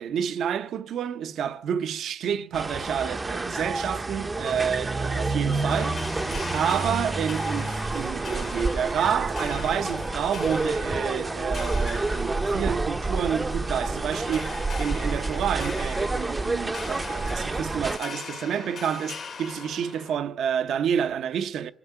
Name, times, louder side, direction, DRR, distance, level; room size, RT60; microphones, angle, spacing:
voice 1, 0.0-6.0 6.5-21.7, right 8 dB, 70° right, 0.6 m, -29 dB
sound 1, 2.5-18.0, right 3 dB, 20° right, 0.6 m, -29 dB
sound 2, 5.7-20.2, left 5 dB, 55° left, 1.5 m, -41 dB
26.0 x 9.8 x 5.7 m
cardioid pair, 90°, 0 cm